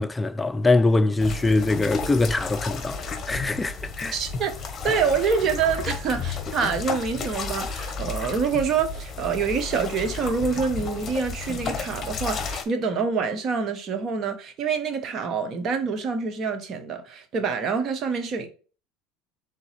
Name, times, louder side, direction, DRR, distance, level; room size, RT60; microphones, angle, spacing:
voice 1, 0.0-4.2, left 2 dB, 15° left, 0.4 m, -23 dB
sound 1, 1.2-12.6, left 4 dB, 35° left, 1.0 m, -32 dB
voice 2, 4.1-4.5 4.8-18.5, right 5 dB, 45° right, 0.9 m, -26 dB
3.9 x 3.5 x 3.2 m
hypercardioid pair, 80°, 0 cm